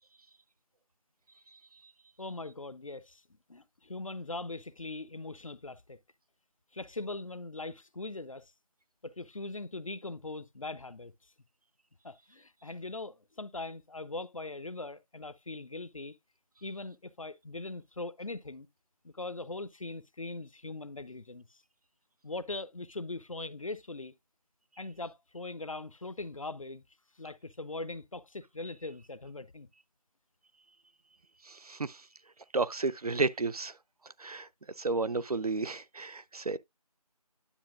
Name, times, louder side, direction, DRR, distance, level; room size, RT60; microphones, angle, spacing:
voice 1, 2.2-3.2 3.5-6.0 6.7-8.5 9.0-11.1 12.0-16.2 16.6-18.7 19.0-21.6 22.2-24.1 24.8-26.8 27.2-29.7, left 2 dB, 55° left, 0.6 m, -41 dB
voice 2, 31.4-32.0 32.5-33.7 34.2-34.5 34.8-36.6, right 3 dB, 65° right, 0.5 m, -32 dB
9.9 x 6.8 x 2.4 m
figure-of-eight pair, 170°, 20 cm